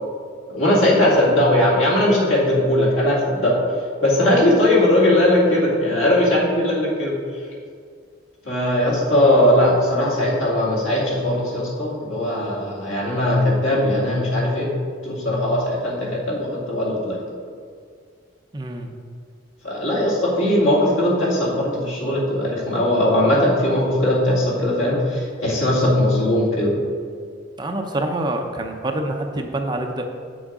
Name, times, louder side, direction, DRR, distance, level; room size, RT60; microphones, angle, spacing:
voice 1, 0.5-3.6 4.0-7.1 8.5-14.7 15.0-17.2 19.6-26.8, left 1 dB, 85° left, -4 dB, 2.4 m, -19 dB
voice 2, 18.5-18.9 27.6-30.0, right 1 dB, 20° right, 3 dB, 0.6 m, -26 dB
8.0 x 6.2 x 4.8 m, 2.1 s
head